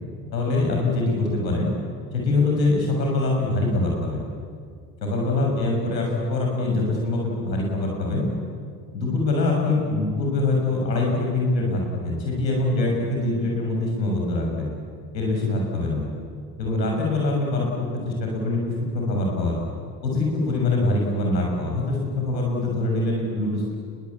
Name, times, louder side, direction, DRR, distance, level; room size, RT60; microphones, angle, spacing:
voice 1, 0.3-1.7 2.1-4.2 5.0-8.3 8.9-14.7 15.1-16.1 16.6-19.5 20.0-23.8, left 2 dB, 90° left, -1 dB, 6.4 m, -24 dB
28.5 x 22.5 x 8.6 m, 2.2 s
hypercardioid pair, 55°, 50 cm